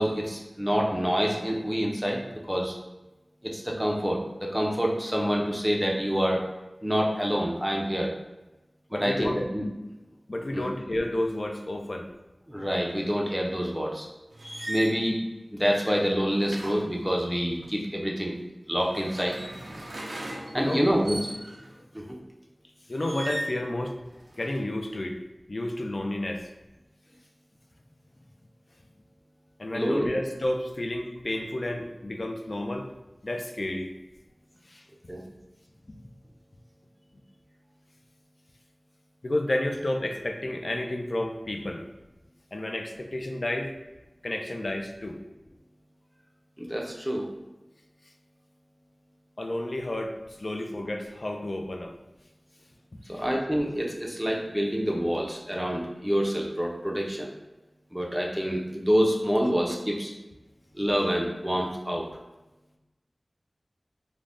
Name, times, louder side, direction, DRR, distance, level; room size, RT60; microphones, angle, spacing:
voice 1, 0.0-2.8 3.4-6.4 6.8-8.1 8.9-9.6 10.5-10.6 12.5-14.1 14.7-15.2 15.5-18.3 18.7-19.4 20.5-21.2 21.9-22.2 29.7-30.2 35.1-35.3 46.6-47.3 53.1-57.3 57.9-60.1 60.7-62.1, equal, 10° right, -1 dB, 0.4 m, -27 dB
voice 2, 8.9-9.5 10.3-12.1 20.6-20.8 22.9-24.0 24.4-25.2 25.5-26.5 29.6-32.9 33.2-33.9 34.7-34.8 35.9-36.0 39.2-41.8 42.5-43.7 44.2-45.2 49.4-51.9 53.1-53.3, left 1 dB, 55° left, 4 dB, 0.3 m, -31 dB
sound 1, 14.3-15.0 16.4-17.7 18.7-21.7 23.0-23.6 24.1-24.6, right 1 dB, 85° right, 0.4 m, -38 dB
2.5 x 2.0 x 3.3 m, 1.0 s
wide cardioid pair, 55°, 0 cm